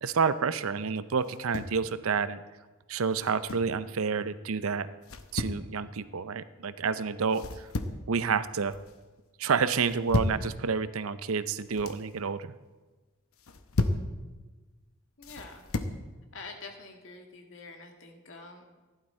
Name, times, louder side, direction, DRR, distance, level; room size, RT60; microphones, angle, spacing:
voice 1, 0.0-2.4 2.9-4.9 5.3-7.7 8.1-8.8 9.4-12.6, right 5 dB, 80° right, 13 dB, 0.6 m, -29 dB
sound 1, 1.2-1.8 3.1-3.8 5.0-5.6 7.3-8.1 8.5-8.9 9.8-10.5 11.5-12.0 13.3-14.1 15.2-16.0, left 2 dB, 85° left, 0.8 m, -33 dB
voice 2, 15.2-15.6 16.3-18.6, left 3 dB, 65° left, 3 dB, 1.7 m, -46 dB
15.0 x 11.5 x 4.3 m, 1.2 s
head